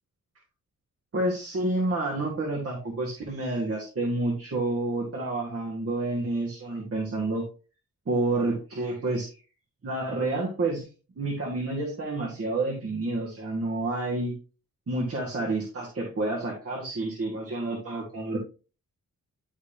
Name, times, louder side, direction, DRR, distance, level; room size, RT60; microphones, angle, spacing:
voice 1, 1.1-7.5 8.1-9.3 9.8-10.9 11.2-14.3 14.9-18.4, right 2 dB, 45° right, -2 dB, 1.9 m, -29 dB
11.0 x 5.1 x 2.9 m, 0.35 s
wide cardioid pair, 125°, 34 cm